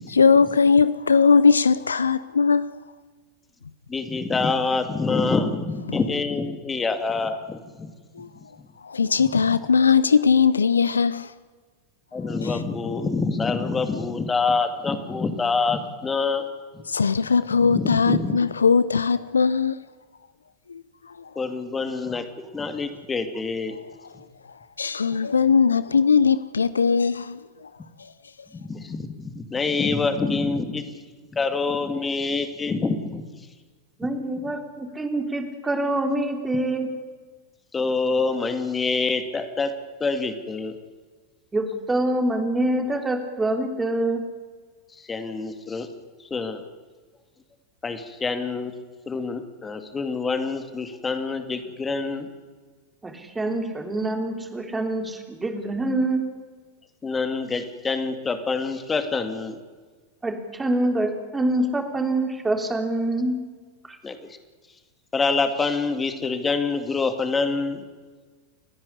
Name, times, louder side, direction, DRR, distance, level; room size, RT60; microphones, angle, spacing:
voice 1, 0.1-2.7 8.2-8.3 8.8-11.3 12.4-12.6 16.9-19.8 20.7-21.3 24.8-27.7 28.0-28.1, left 5 dB, 80° left, 0.6 m, -20 dB
voice 2, 3.9-7.9 9.5-9.6 12.1-16.5 17.6-18.4 21.4-23.8 28.5-30.9 31.3-33.2 34.4-34.5 37.7-39.7 40.0-40.8 44.9-45.9 46.2-46.6 47.8-48.7 49.1-52.3 57.0-59.6 64.0-64.2 65.1-67.9, left 4 dB, 20° left, 2.4 m, -26 dB
voice 3, 34.0-36.9 41.5-44.2 53.0-56.2 60.2-63.4, right 1 dB, 10° right, 3.4 m, -25 dB
29.5 x 10.5 x 9.9 m
figure-of-eight pair, 90°, 0 cm